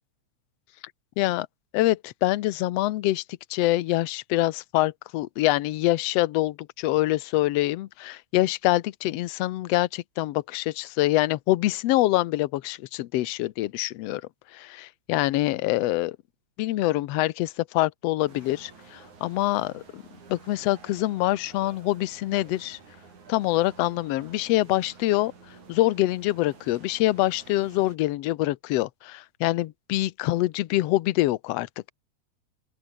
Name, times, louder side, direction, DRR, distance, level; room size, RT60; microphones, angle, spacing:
voice 1, 1.2-1.5 1.7-3.2 3.5-14.2 14.5-16.2 16.6-20.0 20.3-22.8 23.3-25.3 25.7-31.9, left 17 dB, 70° left, 1.7 m, -25 dB
sound 1, 18.3-28.0, right 5 dB, 85° right, 6.2 m, -51 dB
open air
omnidirectional pair, 3.3 m